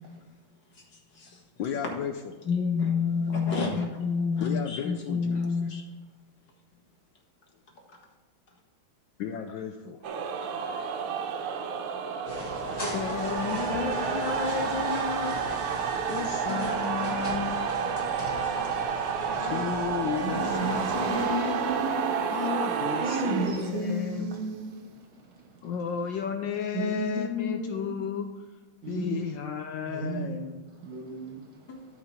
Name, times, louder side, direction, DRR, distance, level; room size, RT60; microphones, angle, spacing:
voice 1, 1.6-2.2 4.4-5.8 9.2-10.0 12.9-15.4 16.1-17.8 19.4-21.6 22.3-24.4 25.6-28.5 28.9-30.7, left 7 dB, 70° left, 6 dB, 1.2 m, -33 dB
voice 2, 2.5-5.8 31.7-31.8, left 5 dB, 55° left, 0 dB, 2.2 m, -28 dB
sound 1, 10.0-24.2, right 6 dB, 85° right, 1.7 m, -30 dB
sound 2, 12.2-21.2, left 1 dB, 25° left, 3.5 m, -37 dB
voice 3, 20.2-22.2 23.0-25.6 26.7-27.9 28.8-29.2 29.9-30.4 30.8-31.7, right 2 dB, 65° right, 1 dB, 2.4 m, -34 dB
13.0 x 5.0 x 4.3 m, 1.3 s
omnidirectional pair, 2.3 m